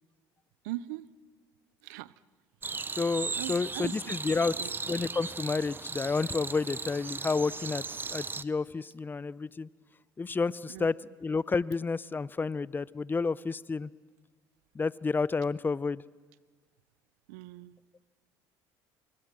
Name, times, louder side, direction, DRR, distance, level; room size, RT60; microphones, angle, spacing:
voice 1, 0.6-1.1 1.8-2.1 3.4-4.0 4.5-4.7 10.7-10.9 17.3-18.1, right 16 dB, 90° right, 19 dB, 0.7 m, -40 dB
sound 1, 2.6-8.4, right 4 dB, 25° right, 0.8 m, -37 dB
voice 2, 2.9-4.5 4.9-7.8 8.1-9.7 10.2-13.9 14.7-16.0, left 4 dB, 20° left, 21 dB, 0.6 m, -30 dB
26.0 x 23.0 x 6.2 m, 1.4 s
supercardioid pair, 80°, 9 cm